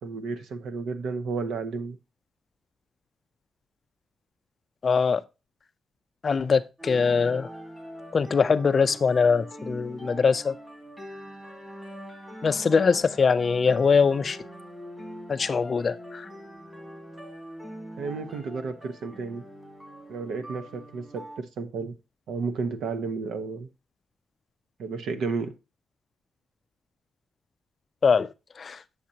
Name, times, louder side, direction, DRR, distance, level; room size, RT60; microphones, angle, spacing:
voice 1, 0.0-2.0 18.0-19.4 20.1-21.9 22.3-23.7 24.8-25.5, right 4 dB, 90° right, 0.8 m, -32 dB
voice 2, 4.8-5.2 6.2-7.5 8.1-10.5 12.4-14.4 15.3-16.3 28.0-28.3 28.6-28.8, left 5 dB, 35° left, 0.3 m, -22 dB
sound 1, 6.8-21.4, equal, 10° right, 2.3 m, -43 dB
8.5 x 6.6 x 2.8 m
wide cardioid pair, 150°, 0 cm